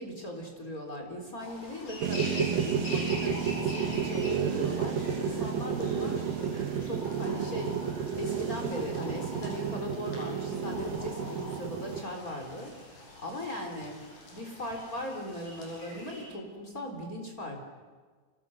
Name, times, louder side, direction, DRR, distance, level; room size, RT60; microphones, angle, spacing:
voice 1, 0.0-6.3 6.8-7.8 8.1-14.0 14.3-17.6, equal, 25° left, 2 dB, 4.0 m, -39 dB
sound 1, 1.4-16.2, left 1 dB, 65° left, 7.9 m, -44 dB
sound 2, 2.0-12.0, right 7 dB, 70° right, 3.3 m, -31 dB
29.5 x 26.5 x 6.5 m, 1.5 s
omnidirectional pair, 4.3 m